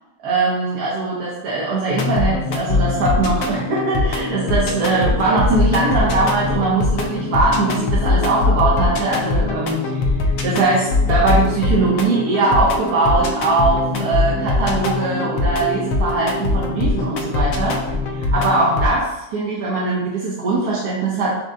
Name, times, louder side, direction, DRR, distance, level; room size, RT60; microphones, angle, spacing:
voice 1, 0.2-10.1 10.4-17.8 18.1-21.4, right 3 dB, 65° right, -6 dB, 1.3 m, -20 dB
sound 1, 1.9-18.9, left 3 dB, 80° left, 1.3 m, -21 dB
6.3 x 2.2 x 3.7 m, 0.92 s
omnidirectional pair, 2.0 m